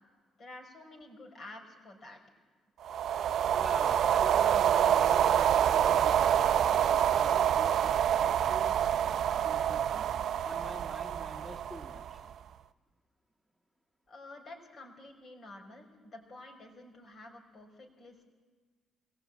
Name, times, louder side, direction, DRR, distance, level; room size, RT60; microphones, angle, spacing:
voice 1, 0.4-2.2 14.1-18.3, left 2 dB, 50° left, 1 dB, 5.5 m, -50 dB
sound 1, 2.8-12.3, right 9 dB, 65° right, 0.6 m, -27 dB
voice 2, 3.5-8.8 9.4-10.2 10.4-12.2, equal, ahead, 0 dB, 2.2 m, -47 dB
21.5 x 18.0 x 8.8 m, 1.4 s
supercardioid pair, 65°, 0 cm